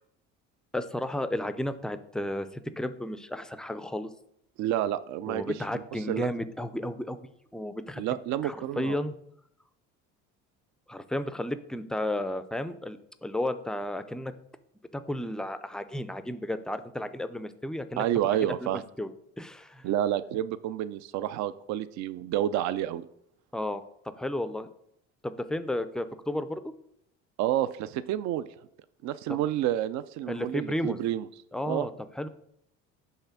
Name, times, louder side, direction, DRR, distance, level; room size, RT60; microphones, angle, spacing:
voice 1, 0.7-4.1 5.3-7.2 7.5-8.1 8.4-9.1 10.9-14.3 14.9-18.7 19.0-19.1 19.4-19.8 23.5-23.8 24.2-24.7 25.2-26.6 29.3-29.4 30.3-31.0 31.5-31.9 32.2-32.3, left 1 dB, ahead, 12 dB, 0.4 m, -33 dB
voice 2, 4.6-5.5 6.1-6.3 8.0-9.0 18.0-18.8 19.8-23.1 27.4-28.5 29.0-31.3 31.6-31.9, right 12 dB, 65° right, 15 dB, 0.5 m, -29 dB
5.7 x 3.3 x 5.8 m, 0.74 s
supercardioid pair, 85°, 31 cm